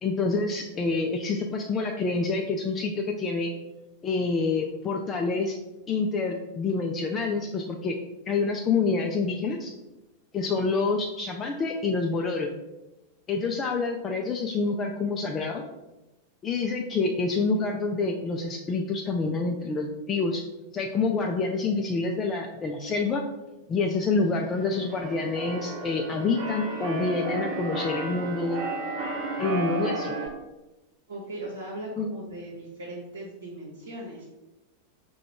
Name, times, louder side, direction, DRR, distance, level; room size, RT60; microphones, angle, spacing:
voice 1, 0.0-3.5 4.0-5.6 5.9-8.0 8.3-9.7 10.3-12.5 13.3-15.6 16.4-20.4 20.7-23.2 23.7-28.7 29.4-30.1 32.0-32.1, left 4 dB, 25° left, 2 dB, 0.4 m, -27 dB
Keyboard (musical), 24.4-30.3, right 2 dB, 35° right, 1.0 m, -33 dB
voice 2, 31.1-34.3, right 1 dB, 70° right, -4 dB, 1.0 m, -38 dB
4.9 x 2.3 x 4.5 m, 1.0 s
figure-of-eight pair, 90°, 0 cm